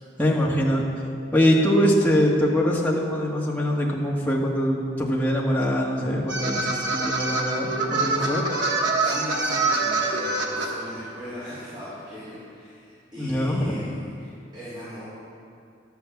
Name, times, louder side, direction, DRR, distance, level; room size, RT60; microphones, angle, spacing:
voice 1, 0.2-0.8 1.3-8.4 13.2-13.9, equal, 10° left, -4 dB, 1.7 m, -23 dB
sound 1, 6.3-10.7, right 3 dB, 80° right, 1.4 m, -25 dB
voice 2, 9.0-15.0, equal, 25° right, -12 dB, 3.6 m, -39 dB
12.0 x 8.2 x 7.1 m, 2.4 s
head